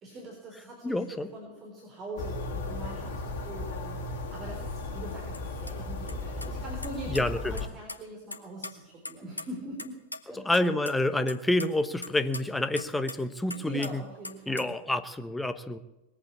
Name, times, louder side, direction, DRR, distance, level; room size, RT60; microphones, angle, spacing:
voice 1, 0.0-10.0 10.3-10.5 13.6-14.7, right 1 dB, 30° right, -1 dB, 3.8 m, -43 dB
voice 2, 0.8-1.3 7.1-7.6 10.4-14.0 14.5-15.8, left 1 dB, 5° left, 11 dB, 1.0 m, -28 dB
sound 1, 2.2-7.7, left 2 dB, 55° left, 2.5 m, -36 dB
sound 2, 5.3-5.4 5.7-5.8 6.1-6.2 6.4-7.2 7.6-8.0 8.3-9.9 10.1-10.2 10.5-10.9 11.3-13.2 13.5-13.9 14.2-14.8, left 2 dB, 80° left, 1.2 m, -39 dB
20.5 x 8.6 x 8.3 m, 1.0 s
figure-of-eight pair, 90°, 0 cm